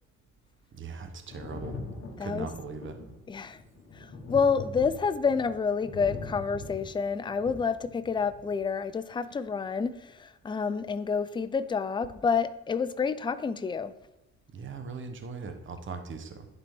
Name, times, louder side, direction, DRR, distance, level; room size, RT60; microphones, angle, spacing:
voice 1, 0.7-1.8 2.2-3.0 14.5-16.5, right 4 dB, 40° right, 7 dB, 0.9 m, -39 dB
Thunder, 1.3-8.6 9.8-9.9, left 3 dB, 50° left, 1.7 m, -42 dB
voice 2, 3.3-3.6 4.3-9.9 10.2-13.9, left 5 dB, 15° left, 12 dB, 0.4 m, -28 dB
10.5 x 4.0 x 3.5 m, 0.97 s
cardioid pair, 90°, 30 cm